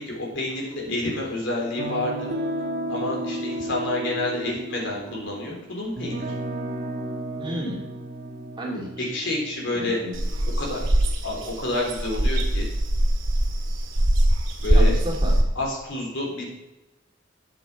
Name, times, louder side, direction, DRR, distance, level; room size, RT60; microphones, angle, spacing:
voice 1, 0.0-2.3 2.9-6.2 9.0-10.0 10.6-10.8 11.2-12.6 14.6-14.9 15.6-16.5, left 2 dB, 65° left, -2 dB, 3.9 m, -28 dB
sound 1, 1.8-11.0, right 1 dB, 55° right, 1.3 m, -33 dB
voice 2, 7.4-7.9 8.6-9.1 9.7-10.2 14.7-15.3, equal, 25° right, -2 dB, 2.3 m, -32 dB
sound 2, 10.1-15.4, right 1 dB, 75° right, 2.1 m, -21 dB
11.5 x 7.9 x 4.5 m, 1.0 s
head